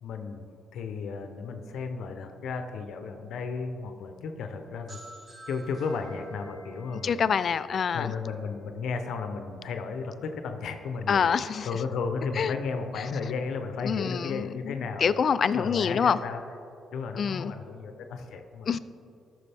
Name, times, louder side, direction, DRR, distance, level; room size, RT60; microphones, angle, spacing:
voice 1, 0.0-5.0 5.5-7.5 7.9-15.1 15.5-16.4 16.9-18.7, left 5 dB, 75° left, 6 dB, 0.7 m, -34 dB
sound 1, 4.9-8.5, right 1 dB, 45° right, 1.2 m, -51 dB
voice 2, 7.0-8.1 11.1-11.7 12.4-12.5 13.0-13.1 13.8-16.2 17.2-17.5 18.7-18.8, left 6 dB, 50° left, 15 dB, 0.3 m, -26 dB
13.5 x 6.2 x 3.5 m, 2.6 s
cardioid pair, 90°, 0 cm